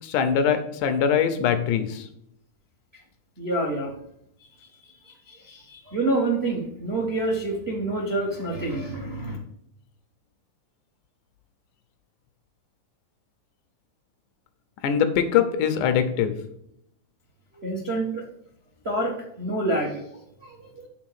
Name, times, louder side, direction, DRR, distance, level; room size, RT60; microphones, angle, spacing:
voice 1, 0.0-2.1 14.8-16.4, left 8 dB, 80° left, 9 dB, 2.4 m, -22 dB
voice 2, 3.4-3.9 4.8-9.4 17.5-18.2 18.8-20.9, right 2 dB, 60° right, 0 dB, 0.6 m, -28 dB
8.5 x 3.8 x 6.4 m, 0.74 s
omnidirectional pair, 3.6 m